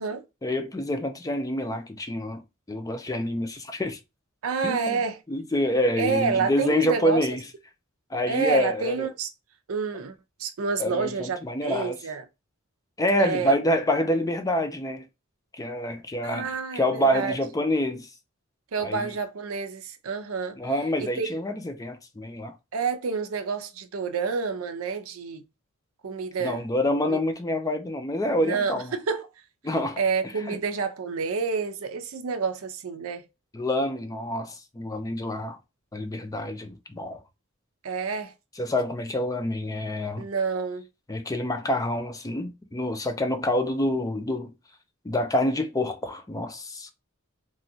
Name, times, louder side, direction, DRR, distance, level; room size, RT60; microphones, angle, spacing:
voice 1, 0.4-2.4 2.7-4.0 4.6-5.0 5.3-7.4 8.1-9.1 10.8-12.0 13.0-15.1 15.5-18.1 18.8-19.1 20.6-22.5 26.4-28.9 29.6-30.0 30.5-30.6 33.5-35.6 35.9-37.2 38.6-40.2 41.1-44.5 45.0-46.9, left 1 dB, 15° left, 0.4 m, -27 dB
voice 2, 4.4-5.2 6.0-7.3 8.3-9.3 9.7-10.1 10.4-12.2 13.2-13.5 16.2-17.4 18.7-20.6 21.0-21.3 22.7-25.4 26.0-26.6 27.1-27.2 28.4-29.3 30.0-33.3 37.8-38.3 40.2-40.9, right 5 dB, 80° right, 0.5 m, -28 dB
3.0 x 2.6 x 2.7 m
head